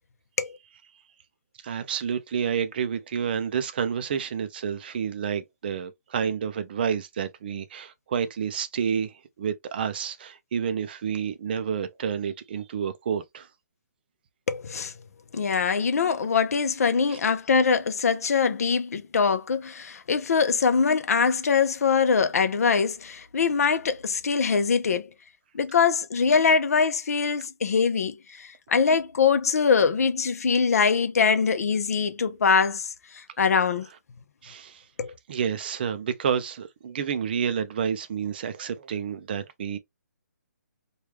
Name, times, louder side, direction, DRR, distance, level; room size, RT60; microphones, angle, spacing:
voice 1, 1.6-13.5 17.1-17.2 34.4-34.8 35.3-39.8, right 7 dB, 35° right, 0.4 m, -29 dB
voice 2, 14.5-14.9 15.3-25.1 25.5-33.9 35.0-35.1, left 5 dB, 60° left, 0.6 m, -23 dB
3.2 x 2.3 x 3.2 m
hypercardioid pair, 160°, 9 cm